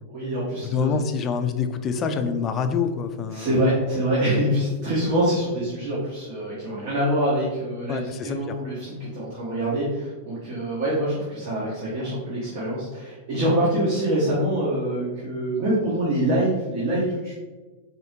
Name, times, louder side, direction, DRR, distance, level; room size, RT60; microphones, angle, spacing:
voice 1, 0.1-0.9 3.3-17.3, right 1 dB, 45° right, -6 dB, 1.1 m, -25 dB
voice 2, 0.6-3.7 7.9-8.6, left 6 dB, 25° left, 7 dB, 0.3 m, -26 dB
4.3 x 3.6 x 2.7 m, 1.3 s
supercardioid pair, 160°, 0 cm